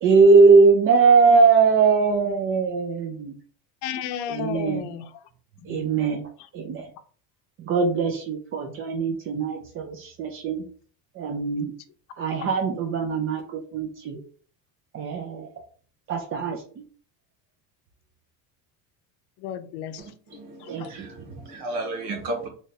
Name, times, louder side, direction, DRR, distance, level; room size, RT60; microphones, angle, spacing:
voice 1, 0.0-3.4 4.3-4.9 5.6-6.2 6.5-6.9 7.6-10.6 11.2-11.7 12.2-14.2 14.9-15.5 16.1-16.6 20.7-21.1, right 4 dB, 30° right, 2 dB, 0.4 m, -20 dB
voice 2, 3.8-5.1 5.7-5.9 19.4-20.0 20.6-20.9, left 9 dB, 65° left, 9 dB, 0.6 m, -33 dB
voice 3, 20.0-22.5, right 2 dB, 60° right, 3 dB, 1.5 m, -34 dB
3.2 x 2.5 x 4.0 m, 0.43 s
cardioid pair, 150°, 45 cm